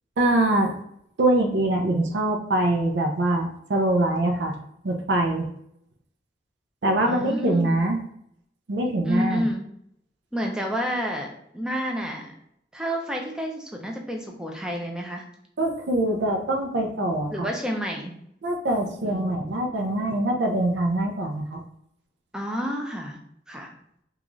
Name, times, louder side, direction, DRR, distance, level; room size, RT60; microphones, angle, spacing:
voice 1, 0.2-0.7 1.2-4.5 4.8-5.5 6.8-8.0 8.7-9.5 15.6-17.5 18.4-21.6, right 1 dB, 70° right, 3 dB, 0.5 m, -23 dB
voice 2, 7.0-7.7 9.0-9.6 10.3-12.3 12.7-15.2 17.3-18.1 19.0-19.5 22.3-23.2 23.5-23.7, equal, 5° right, 1 dB, 0.4 m, -30 dB
3.7 x 2.3 x 3.0 m, 0.73 s
head